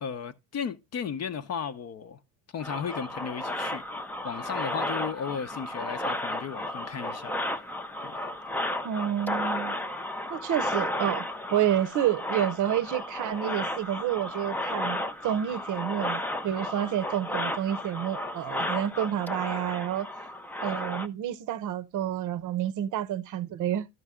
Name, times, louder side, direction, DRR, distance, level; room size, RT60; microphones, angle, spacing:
voice 1, 0.0-2.2 2.5-3.8 4.2-7.6 8.0-8.3, left 7 dB, 35° left, 0.8 m, -35 dB
sound 1, 2.6-21.1, left 1 dB, 5° left, 0.5 m, -33 dB
voice 2, 8.8-9.8 10.3-20.1 20.6-23.9, right 11 dB, 40° right, 0.8 m, -29 dB
12.5 x 5.5 x 3.6 m
supercardioid pair, 115°, 45 cm